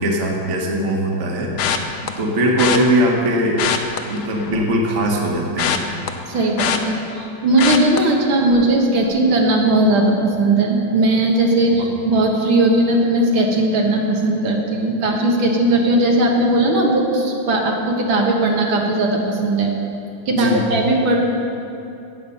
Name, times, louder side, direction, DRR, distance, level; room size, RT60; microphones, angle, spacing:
voice 1, 0.0-1.5 2.2-3.7 4.1-5.8 11.7-11.9 20.3-20.6, right 1 dB, 40° right, -1 dB, 1.6 m, -20 dB
sound 1, 1.6-2.1 2.6-2.8 3.5-4.7 5.0-7.3 7.6-8.0 8.5-8.7 9.0-9.1, left 8 dB, 65° left, 1.2 m, -23 dB
voice 2, 6.3-19.7 20.3-21.2, right 2 dB, 75° right, 0 dB, 2.1 m, -18 dB
17.5 x 7.3 x 5.4 m, 2.7 s
omnidirectional pair, 2.3 m